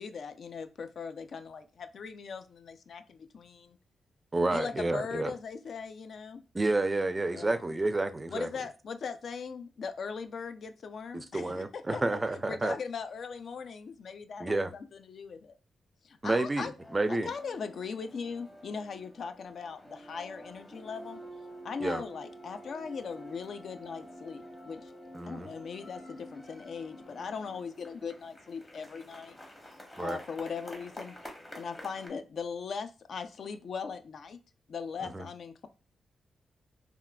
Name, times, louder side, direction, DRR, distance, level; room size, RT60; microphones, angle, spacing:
voice 1, 0.0-3.8 4.5-6.4 7.3-7.6 8.3-12.0 12.3-15.6 16.0-16.7 17.1-21.2 21.6-24.9 25.3-29.4 30.0-31.2 31.6-34.4 34.7-35.7, left 5 dB, 65° left, 10 dB, 0.3 m, -39 dB
voice 2, 4.3-5.3 6.5-8.5 11.1-12.7 14.4-14.7 16.2-17.3 21.8-22.0 25.1-25.5 30.0-30.2 35.1-35.3, right 2 dB, 25° right, 10 dB, 0.3 m, -30 dB
sound 1, 16.8-32.1, equal, 20° left, 0.8 m, -49 dB
3.5 x 2.3 x 2.2 m, 0.31 s
cardioid pair, 85°, 0 cm